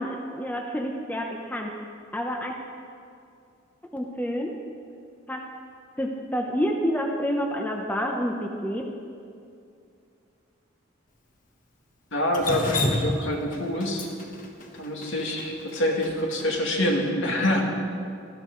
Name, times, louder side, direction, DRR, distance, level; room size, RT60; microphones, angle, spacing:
voice 1, 0.0-1.8 2.1-2.6 3.8-4.6 5.3-5.4 6.0-8.9, equal, 10° left, 1 dB, 0.8 m, -28 dB
voice 2, 12.1-14.1 14.7-17.6, left 1 dB, 70° left, 0 dB, 2.2 m, -26 dB
Drip, 12.3-16.5, left 1 dB, 40° left, 1.4 m, -29 dB
19.0 x 13.0 x 3.9 m, 2.5 s
head